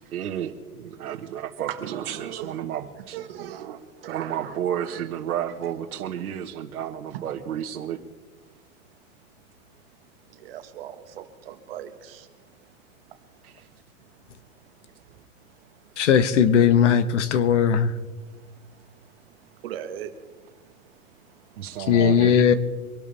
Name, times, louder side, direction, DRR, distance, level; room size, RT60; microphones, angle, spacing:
voice 1, 0.1-3.2 4.1-8.0 13.4-13.7 21.6-22.5, right 10 dB, 75° right, 1.5 m, -32 dB
voice 2, 1.7-2.6 3.1-3.8 4.0-4.6 4.9-5.0 10.5-10.9 11.7-11.9 19.6-20.1, right 11 dB, 40° right, 1.4 m, -36 dB
voice 3, 16.0-17.9 21.9-22.5, left 8 dB, 55° left, 1.2 m, -18 dB
25.0 x 12.5 x 3.4 m
supercardioid pair, 180°, 43 cm